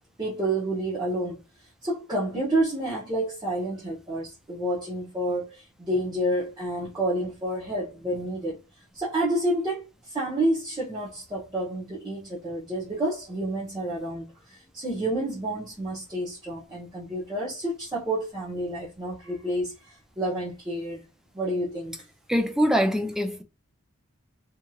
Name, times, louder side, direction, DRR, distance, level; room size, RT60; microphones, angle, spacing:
voice 1, 0.2-1.4 1.8-8.6 8.9-21.0 21.3-22.0, right 1 dB, 20° right, 0.8 m, -29 dB
voice 2, 22.3-23.4, equal, ahead, 0.3 m, -23 dB
2.8 x 2.6 x 2.3 m
head